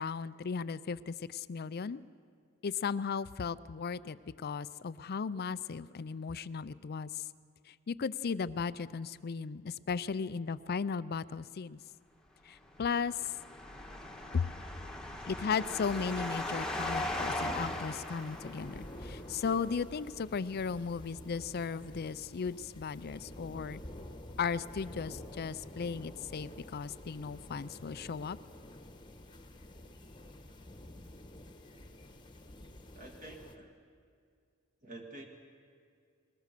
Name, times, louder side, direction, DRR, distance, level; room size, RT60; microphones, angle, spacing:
voice 1, 0.0-2.0 2.6-7.2 7.7-11.8 12.4-13.3 14.3-14.5 15.3-23.8 24.4-28.4, left 5 dB, 50° left, 16 dB, 0.5 m, -36 dB
sound 1, 12.7-19.1, left 1 dB, 5° left, 1.3 m, -38 dB
sound 2, 15.8-33.6, left 1 dB, 20° left, 1.2 m, -49 dB
voice 2, 32.9-33.7 34.8-35.3, right 2 dB, 40° right, 2 dB, 1.9 m, -48 dB
21.5 x 19.5 x 6.7 m, 2.2 s
head